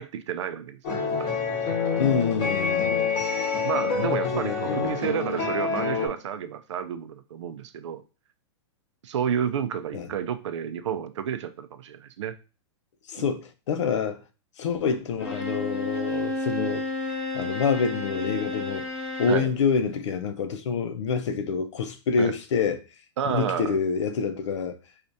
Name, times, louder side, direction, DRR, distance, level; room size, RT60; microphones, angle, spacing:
voice 1, 0.0-1.3 2.9-3.1 3.6-8.0 9.0-12.4 13.2-13.3 19.3-19.5 22.2-22.3 23.2-23.8, right 8 dB, 85° right, 0.5 m, -31 dB
sound 1, 0.8-6.1, left 5 dB, 55° left, 1.3 m, -27 dB
voice 2, 2.0-3.1 4.0-4.9 9.9-10.1 13.1-14.2 14.6-16.8 17.3-18.8 19.2-22.8 23.2-24.7, left 5 dB, 80° left, 0.6 m, -27 dB
Bowed string instrument, 15.2-19.5, left 2 dB, 20° left, 1.4 m, -31 dB
4.3 x 2.4 x 2.6 m
hypercardioid pair, 150°, 15 cm